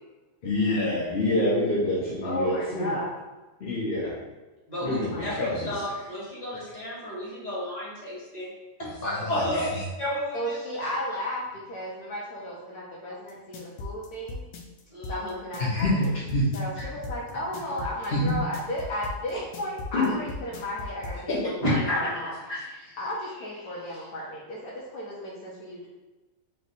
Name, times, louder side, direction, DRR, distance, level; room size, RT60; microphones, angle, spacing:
voice 1, 0.4-2.9 3.6-4.1 4.8-5.7 9.0-9.8 15.6-16.5 18.1-18.3 19.9-20.1 21.3-21.4, left 1 dB, 45° left, -7 dB, 0.9 m, -26 dB
voice 2, 2.2-3.1 4.8-5.3 9.1-9.5 10.3-14.4 15.1-16.1 16.5-22.3 23.0-25.9, equal, 65° left, -5 dB, 1.2 m, -34 dB
voice 3, 4.7-5.3 5.6-8.5 8.8-8.9 9.3-9.6 10.0-10.6 14.9-15.3 16.8-16.9 21.6-22.6, left 1 dB, 25° left, -9 dB, 1.6 m, -31 dB
sound 1, 13.3-21.2, left 2 dB, 90° left, 1.2 m, -37 dB
3.3 x 3.3 x 4.1 m, 1.1 s
omnidirectional pair, 1.8 m